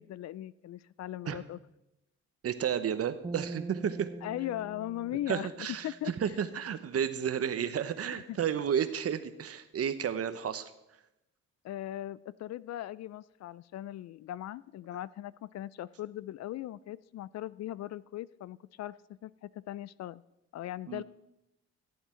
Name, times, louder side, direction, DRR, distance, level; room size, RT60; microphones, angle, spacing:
voice 1, 0.0-1.6 4.2-5.5 5.8-6.1 8.1-8.4 11.6-20.2 20.5-21.0, left 13 dB, 60° left, 20 dB, 0.4 m, -39 dB
voice 2, 2.4-4.1 5.3-10.7 20.9-21.0, right 8 dB, 50° right, 12 dB, 0.9 m, -32 dB
sound 1, 3.2-6.6, right 3 dB, 15° right, 0.7 m, -44 dB
15.0 x 8.5 x 4.4 m, 0.89 s
cardioid pair, 90°, 30 cm